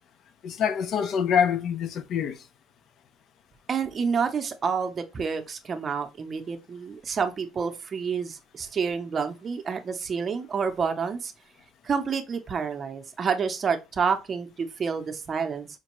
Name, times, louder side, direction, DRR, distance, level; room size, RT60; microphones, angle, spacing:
voice 1, 0.4-2.5, left 7 dB, 55° left, 0.5 m, -25 dB
voice 2, 3.7-11.3 11.8-15.7, right 6 dB, 30° right, 0.7 m, -29 dB
5.1 x 2.2 x 3.0 m
cardioid pair, 115°, 0 cm